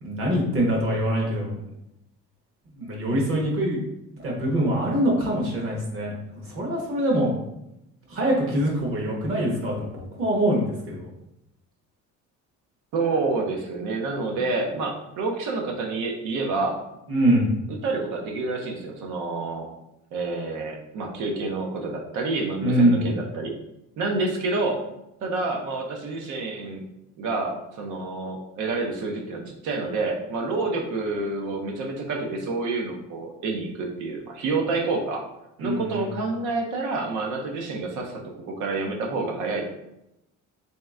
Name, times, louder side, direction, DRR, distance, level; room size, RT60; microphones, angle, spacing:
voice 1, 0.0-1.6 2.8-3.8 4.1-7.4 8.1-11.1 17.1-17.5 22.6-23.0 35.6-36.1, right 1 dB, 45° right, -1 dB, 1.1 m, -24 dB
voice 2, 12.9-16.8 17.8-19.7 20.1-23.5 24.0-24.8 25.2-26.8 27.2-35.2 35.6-38.2 38.5-39.7, right 3 dB, 70° right, 1 dB, 0.8 m, -28 dB
3.2 x 2.9 x 3.6 m, 0.86 s
cardioid pair, 155°, 31 cm